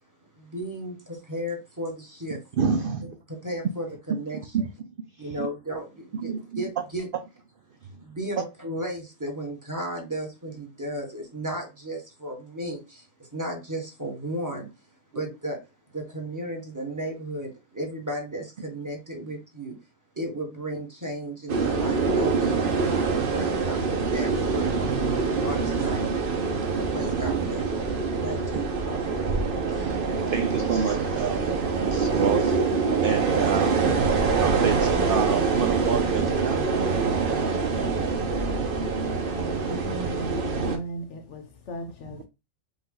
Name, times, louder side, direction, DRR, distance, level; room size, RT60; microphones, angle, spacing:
voice 1, 0.4-2.4 3.3-4.4 5.2-7.1 8.0-14.7 15.1-15.6 15.9-19.7 20.1-24.8 25.1-26.1 26.7-29.2, right 1 dB, 15° right, 1.3 m, -34 dB
voice 2, 2.6-3.1 4.5-4.7 5.1-5.5 6.1-6.6 24.9-25.5 29.7-36.8, right 6 dB, 65° right, 0.5 m, -29 dB
sound 1, 21.5-40.8, right 4 dB, 45° right, 1.0 m, -25 dB
voice 3, 38.0-42.3, equal, 65° left, 1.1 m, -37 dB
5.1 x 2.5 x 3.8 m
omnidirectional pair, 1.4 m